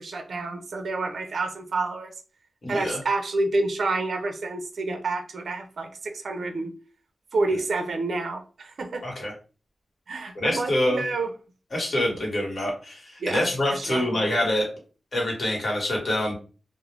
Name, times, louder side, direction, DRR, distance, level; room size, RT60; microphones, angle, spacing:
voice 1, 0.0-2.1 2.7-6.7 7.3-9.0 10.1-11.3 13.2-13.4 13.7-14.1, right 3 dB, 70° right, 5 dB, 0.4 m, -28 dB
voice 2, 2.6-3.0 9.0-9.3 10.3-11.0 11.7-14.7 15.1-16.3, left 1 dB, 45° left, -2 dB, 1.1 m, -26 dB
2.4 x 2.0 x 3.1 m, 0.36 s
wide cardioid pair, 130°, 0 cm